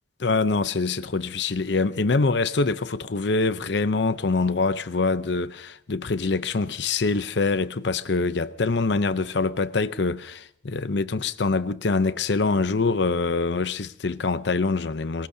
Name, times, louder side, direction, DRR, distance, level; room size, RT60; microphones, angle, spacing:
voice 1, 0.2-15.3, left 3 dB, 80° left, 0.7 m, -24 dB
24.5 x 21.0 x 2.8 m
head